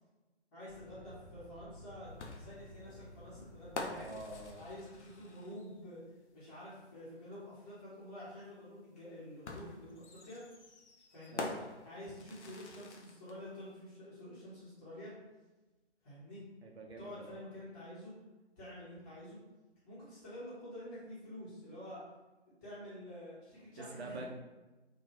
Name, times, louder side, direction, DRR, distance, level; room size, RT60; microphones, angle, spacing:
voice 1, 0.5-4.1 4.5-6.0 6.3-10.5 11.1-11.5 11.8-15.1 16.0-16.4 17.0-18.1 18.6-19.4 19.8-22.0 22.6-24.2, left 1 dB, 15° left, -14 dB, 0.8 m, -48 dB
sound 1, 0.7-5.3, left 1 dB, 35° left, 0.5 m, -55 dB
sound 2, 2.2-5.8 7.3-7.4 9.5-13.4, left 3 dB, 80° left, 0.6 m, -46 dB
voice 2, 4.0-4.6 11.3-11.6 16.6-17.4 23.8-24.3, right 2 dB, 65° right, 1 dB, 0.7 m, -46 dB
2.9 x 2.3 x 2.9 m, 1.1 s
figure-of-eight pair, 135°, 34 cm